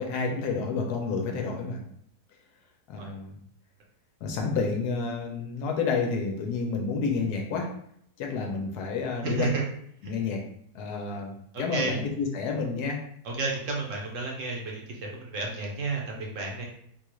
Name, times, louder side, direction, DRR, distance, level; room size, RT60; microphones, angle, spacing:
voice 1, 0.0-1.8 2.9-3.3 4.2-7.7 8.2-9.5 10.0-10.4 10.7-11.3 11.6-13.0, left 4 dB, 90° left, 1 dB, 1.2 m, -29 dB
voice 2, 9.2-9.7 10.0-10.1 11.5-12.0 13.2-16.7, right 3 dB, 60° right, -1 dB, 1.0 m, -31 dB
3.6 x 2.3 x 3.0 m, 0.67 s
omnidirectional pair, 1.7 m